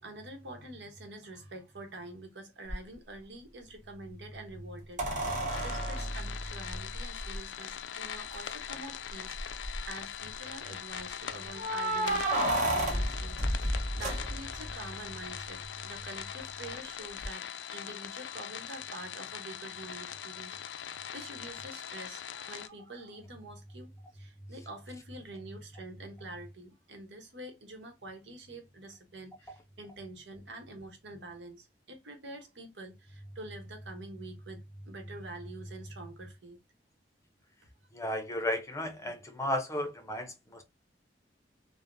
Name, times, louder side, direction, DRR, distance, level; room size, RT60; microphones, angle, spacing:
voice 1, 0.0-36.6, right 1 dB, 85° right, 0.9 m, -46 dB
sound 1, 2.7-2.8 5.0-7.4 8.3-8.4 8.7-8.8 9.4-9.8 11.5-14.7 17.2-17.3, right 1 dB, 45° right, 0.8 m, -31 dB
sound 2, 5.5-22.7, left 9 dB, 80° left, 0.3 m, -42 dB
voice 2, 37.9-40.6, left 1 dB, 15° left, 0.6 m, -34 dB
3.3 x 2.0 x 2.5 m
head